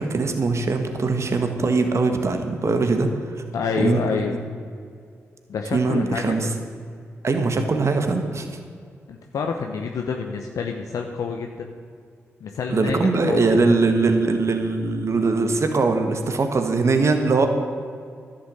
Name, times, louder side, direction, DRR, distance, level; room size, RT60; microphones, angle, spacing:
voice 1, 0.0-3.1 3.8-4.4 5.7-6.5 7.2-8.5 12.7-17.5, right 3 dB, 55° right, 5 dB, 1.6 m, -21 dB
voice 2, 3.5-4.3 5.5-6.4 9.1-11.7 12.4-13.4, left 5 dB, 75° left, 3 dB, 0.9 m, -28 dB
11.0 x 7.0 x 8.9 m, 2.3 s
supercardioid pair, 40°, 6 cm